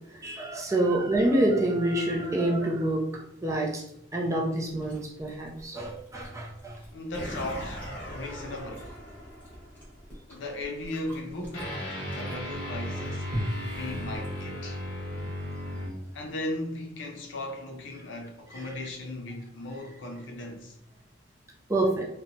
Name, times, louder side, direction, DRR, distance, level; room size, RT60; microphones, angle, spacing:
voice 1, 0.1-3.8 4.1-6.8 21.7-22.0, right 1 dB, 15° right, 0.4 m, -27 dB
Chewing mastication, 4.7-14.8, equal, 10° left, 0.8 m, -42 dB
voice 2, 6.9-8.9 10.3-11.7 12.1-13.3 13.8-14.8 16.1-20.8, left 1 dB, 75° left, 0.5 m, -37 dB
sound 1, 7.1-9.9 11.5-15.9, equal, 55° left, 0.8 m, -36 dB
2.8 x 2.1 x 2.6 m
head